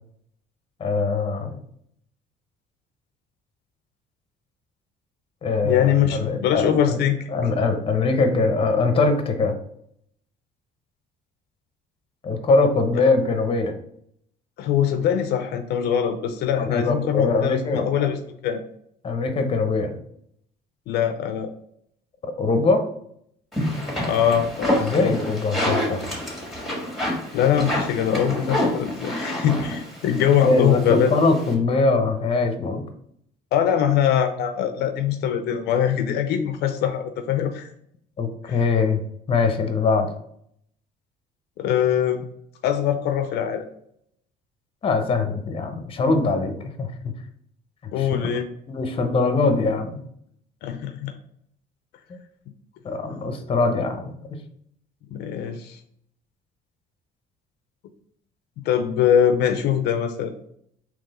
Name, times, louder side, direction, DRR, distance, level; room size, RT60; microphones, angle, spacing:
voice 1, 0.8-1.6 5.4-7.0 7.3-9.5 12.2-13.7 16.6-18.1 19.0-19.9 22.4-22.8 24.8-26.0 30.4-32.8 38.2-39.0 39.3-40.1 44.8-46.9 48.0-48.2 48.7-50.0 52.1-52.2 52.8-54.4, left 3 dB, 35° left, 6 dB, 0.7 m, -22 dB
voice 2, 5.6-7.3 14.6-18.2 18.4-18.6 20.9-21.5 24.0-25.2 27.3-31.1 33.5-37.7 38.5-38.6 41.6-42.2 42.6-43.6 47.9-48.5 50.6-51.1 55.1-55.8 58.6-60.3, left 9 dB, 75° left, 8 dB, 0.5 m, -22 dB
sound 1, 23.5-31.5, equal, ahead, 1.6 m, -28 dB
3.7 x 3.0 x 4.1 m, 0.71 s
cardioid pair, 110°, 17 cm